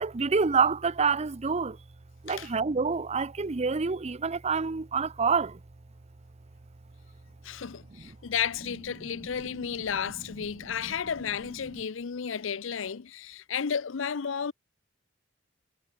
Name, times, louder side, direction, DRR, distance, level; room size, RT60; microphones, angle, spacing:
voice 1, 0.0-1.7 2.3-5.5, right 5 dB, 35° right, 0.6 m, -27 dB
voice 2, 7.4-14.5, left 7 dB, 80° left, 0.6 m, -33 dB
head